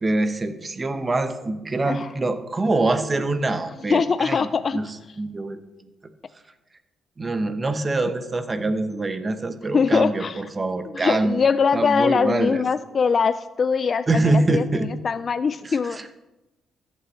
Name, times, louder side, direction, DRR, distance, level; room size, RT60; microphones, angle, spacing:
voice 1, 0.0-4.4 4.7-4.9 5.2-5.6 7.2-11.4 11.7-12.6 14.1-14.9 15.6-16.1, right 2 dB, 25° right, 9 dB, 0.9 m, -24 dB
voice 2, 3.9-4.8 9.7-10.4 10.9-16.0, left 5 dB, 45° left, 13 dB, 0.3 m, -22 dB
14.5 x 8.6 x 3.2 m, 1.0 s
cardioid pair, 90°, 0 cm